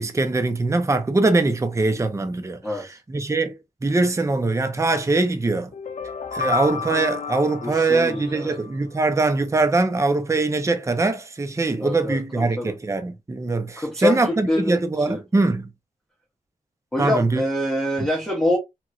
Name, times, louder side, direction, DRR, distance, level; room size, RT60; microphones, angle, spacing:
voice 1, 0.0-5.7 6.3-15.7 17.0-17.4, right 3 dB, 20° right, 0.5 m, -22 dB
voice 2, 2.6-2.9 6.7-6.9 7.6-8.6 11.8-12.7 13.8-14.8 15.1-15.2 16.9-18.6, left 1 dB, 5° left, 1.2 m, -25 dB
sound 1, 5.7-8.8, left 5 dB, 60° left, 0.4 m, -31 dB
2.9 x 2.9 x 2.6 m
wide cardioid pair, 85°, 15 cm